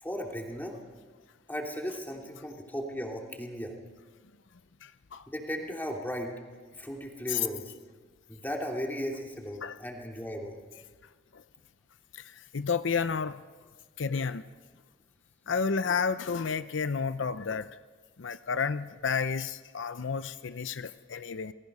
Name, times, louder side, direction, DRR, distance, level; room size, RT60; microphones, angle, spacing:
voice 1, 0.0-0.8 1.5-3.7 5.3-6.3 6.8-7.7 8.3-10.6, equal, 10° left, 0 dB, 2.9 m, -36 dB
voice 2, 4.8-5.3 7.3-7.5 9.6-9.8 11.3-11.4 12.1-13.4 14.0-14.4 15.5-17.7 18.2-21.5, left 5 dB, 75° left, 13 dB, 0.6 m, -31 dB
29.0 x 19.5 x 5.5 m, 1.5 s
head